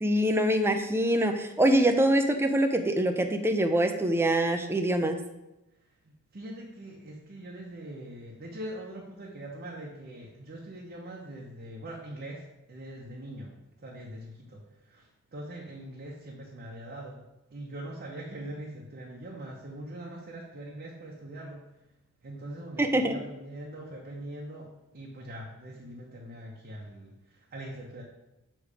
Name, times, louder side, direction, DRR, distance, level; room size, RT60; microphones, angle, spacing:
voice 1, 0.0-5.2 22.8-23.1, right 1 dB, 10° right, 5 dB, 0.4 m, -24 dB
voice 2, 6.0-17.2 17.5-21.6 22.2-24.7 24.9-28.0, right 1 dB, 45° right, -3 dB, 0.8 m, -42 dB
6.6 x 3.2 x 4.8 m, 0.95 s
head